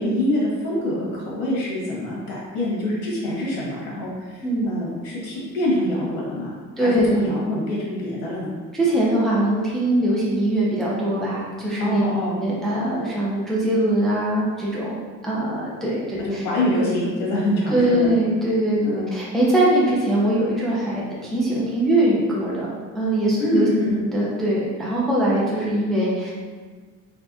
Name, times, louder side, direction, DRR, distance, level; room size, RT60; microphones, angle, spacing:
voice 1, 0.0-8.5 11.8-12.3 16.2-18.1 18.8-19.1 23.4-24.0, left 1 dB, 85° left, -5 dB, 1.4 m, -25 dB
voice 2, 6.8-7.2 8.7-12.0 12.4-15.0 15.2-16.4 17.7-23.7 24.0-26.3, right 1 dB, ahead, -6 dB, 0.4 m, -22 dB
3.4 x 3.3 x 2.6 m, 1.5 s
cardioid pair, 155°, 31 cm